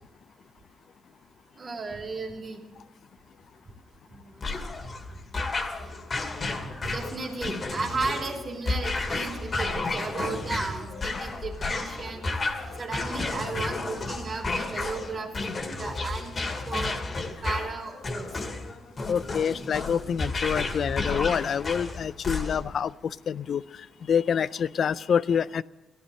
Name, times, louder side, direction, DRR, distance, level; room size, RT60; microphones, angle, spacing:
voice 1, 1.6-2.6 4.1-4.4 6.4-6.6 6.9-17.0 17.4-18.3, right 4 dB, 40° right, 2 dB, 2.9 m, -35 dB
sound 1, 4.4-22.8, left 3 dB, 40° left, 2.2 m, -32 dB
sound 2, 5.9-20.9, left 4 dB, 75° left, 3.6 m, -50 dB
voice 2, 19.1-23.6 24.1-25.6, left 7 dB, 55° left, 19 dB, 0.4 m, -27 dB
15.0 x 11.0 x 7.7 m, 1.0 s
cardioid pair, 90°, 0 cm